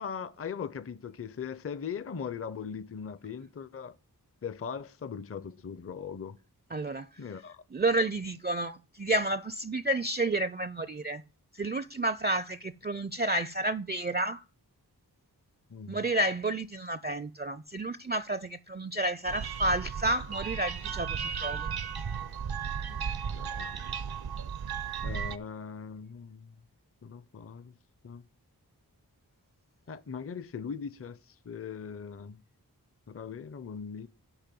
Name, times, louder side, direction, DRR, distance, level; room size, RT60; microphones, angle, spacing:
voice 1, 0.0-4.0 4.4-6.4 7.2-7.6 15.7-16.1 22.9-23.0 23.3-23.7 25.0-26.6 27.0-27.7 28.0-28.2 29.9-32.4 33.1-34.1, left 6 dB, 35° left, 0.5 m, -40 dB
voice 2, 6.7-7.1 7.7-11.2 11.5-14.4 15.9-21.7, right 1 dB, 25° right, 0.4 m, -30 dB
sound 1, 19.2-25.4, right 7 dB, 70° right, 0.6 m, -35 dB
8.8 x 5.3 x 7.5 m
wide cardioid pair, 55°, 40 cm